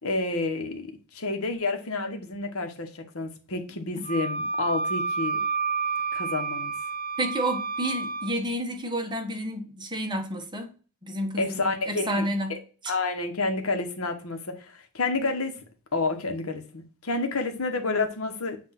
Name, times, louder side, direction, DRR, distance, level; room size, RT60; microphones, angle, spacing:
voice 1, 0.0-5.4 6.1-6.7 11.3-12.3 12.9-15.6 15.9-18.6, left 3 dB, 80° left, 1.3 m, -29 dB
Wind instrument woodwind instrument, 4.0-8.3, right 4 dB, 40° right, 0.9 m, -29 dB
voice 2, 7.2-10.7 11.0-11.6 11.9-12.6, right 1 dB, 20° right, 1.3 m, -30 dB
7.7 x 2.7 x 5.8 m
head